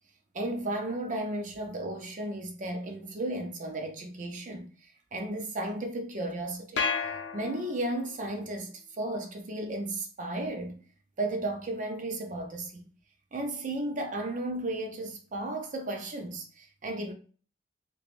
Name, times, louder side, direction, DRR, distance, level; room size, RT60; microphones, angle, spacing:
voice 1, 0.3-6.8 7.3-10.8 11.2-12.8 13.3-17.1, right 1 dB, 45° right, 0.5 m, -34 dB
sound 1, 6.8-8.1, left 5 dB, 80° left, 0.5 m, -32 dB
3.4 x 3.0 x 2.4 m
head